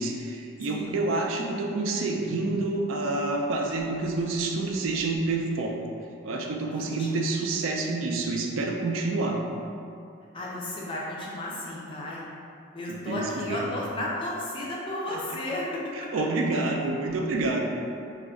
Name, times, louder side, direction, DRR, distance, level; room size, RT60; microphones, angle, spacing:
voice 1, 0.0-5.8 6.2-9.4 12.9-13.7 15.1-15.4 15.9-17.6, right 3 dB, 75° right, 1 dB, 0.3 m, -28 dB
voice 2, 0.6-1.0 6.7-7.3 10.3-12.2 12.7-15.8, left 1 dB, 25° left, -4 dB, 0.4 m, -33 dB
2.3 x 2.1 x 3.5 m, 2.5 s
head